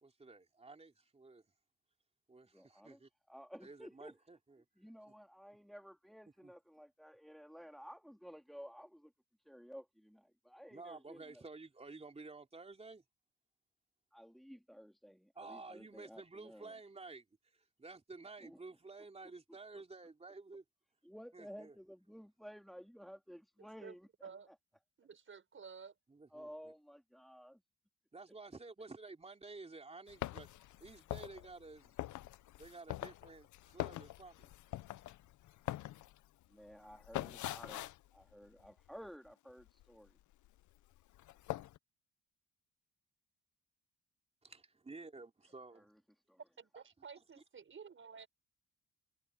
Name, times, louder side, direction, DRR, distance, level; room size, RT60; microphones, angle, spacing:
voice 1, 0.0-1.4 2.3-3.1 3.6-4.6 6.4-6.5 10.7-13.0 15.3-20.6 21.3-21.8 26.1-26.7 28.1-30.5 30.8-32.0 32.6-34.5 34.9-35.0 44.4-45.9, right 3 dB, 20° right, 3.2 m, -52 dB
voice 2, 2.5-3.0 3.3-4.1 4.8-9.1 9.5-11.4 14.1-16.7 18.4-18.6 21.0-24.1 24.5-24.6 26.3-27.6 36.5-40.2 45.8-46.0 46.3-46.4, equal, ahead, 3.7 m, -54 dB
voice 3, 23.6-24.0 24.2-24.5 25.0-25.9 46.6-48.3, right 6 dB, 40° right, 6.3 m, -53 dB
sound 1, 30.1-39.3 39.6-40.6 40.9-41.8, left 15 dB, 75° left, 0.8 m, -44 dB
cardioid pair, 90°, 30 cm